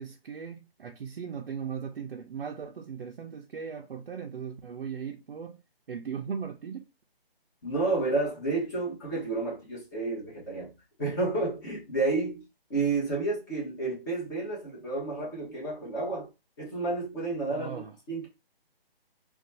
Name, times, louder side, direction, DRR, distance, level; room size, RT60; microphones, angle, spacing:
voice 1, 0.0-5.6 5.9-6.9 17.5-18.0, right 7 dB, 65° right, 0.5 m, -38 dB
voice 2, 7.6-10.7 11.0-12.4 12.7-16.3 16.6-18.3, right 3 dB, 20° left, 1.2 m, -30 dB
2.6 x 2.4 x 4.1 m
hypercardioid pair, 165°, 30 cm